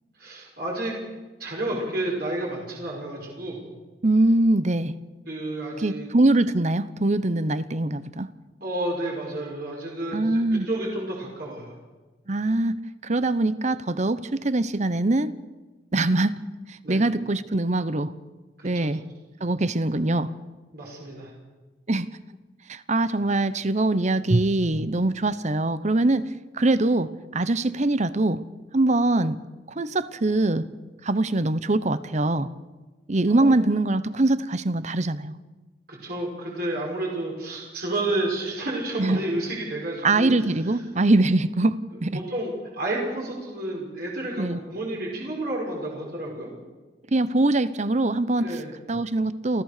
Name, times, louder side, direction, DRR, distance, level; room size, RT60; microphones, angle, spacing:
voice 1, 0.2-0.9 1.4-3.6 5.3-6.1 8.6-11.7 16.8-17.0 18.6-18.9 20.7-21.3 33.3-33.6 35.9-40.8 42.3-46.5 48.4-48.7, right 1 dB, 55° right, -2 dB, 5.6 m, -31 dB
voice 2, 4.0-4.9 5.8-8.3 10.1-10.7 12.3-12.8 13.0-15.3 15.9-16.4 16.7-18.1 18.6-19.0 19.4-20.3 21.9-22.1 22.7-26.2 26.5-28.4 28.7-29.4 29.8-30.7 31.0-32.5 33.1-35.3 39.0-39.2 40.0-42.2 44.4-44.6 47.1-48.6 48.9-49.6, right 2 dB, 40° right, 15 dB, 0.9 m, -23 dB
29.5 x 14.0 x 6.7 m, 1.2 s
head